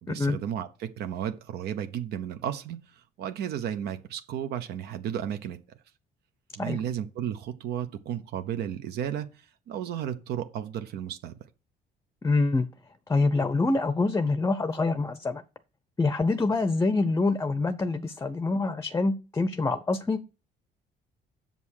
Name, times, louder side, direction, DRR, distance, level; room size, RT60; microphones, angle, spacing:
voice 1, 0.0-5.6 6.6-11.4, right 10 dB, 75° right, 0.9 m, -33 dB
voice 2, 12.2-12.7 13.1-15.4 16.0-20.2, left 3 dB, 15° left, 0.6 m, -25 dB
7.4 x 5.5 x 6.4 m
cardioid pair, 110°, 17 cm